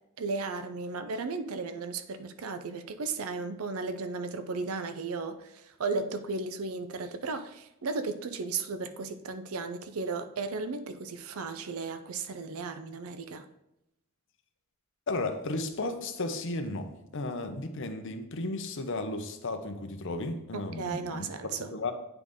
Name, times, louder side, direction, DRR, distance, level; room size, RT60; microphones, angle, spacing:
voice 1, 0.2-13.5 20.5-21.7, right 4 dB, 85° right, 10 dB, 0.6 m, -35 dB
voice 2, 15.1-21.3 21.7-21.9, left 2 dB, 60° left, 7 dB, 0.8 m, -34 dB
9.3 x 3.9 x 3.6 m, 0.87 s
head